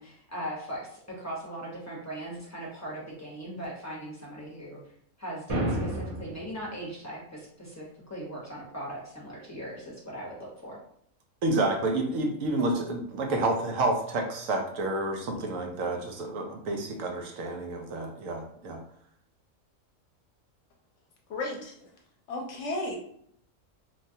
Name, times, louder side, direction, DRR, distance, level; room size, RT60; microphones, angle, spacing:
voice 1, 0.0-4.8 5.2-10.8, right 1 dB, 15° left, -5 dB, 0.7 m, -39 dB
sound 1, 5.5-6.5, right 1 dB, 40° right, 0.6 m, -30 dB
voice 2, 11.4-18.8, right 2 dB, 75° right, 3 dB, 1.0 m, -29 dB
voice 3, 21.3-21.7 22.3-23.0, left 2 dB, 65° left, 1 dB, 0.8 m, -33 dB
3.0 x 2.3 x 2.7 m, 0.69 s
omnidirectional pair, 1.4 m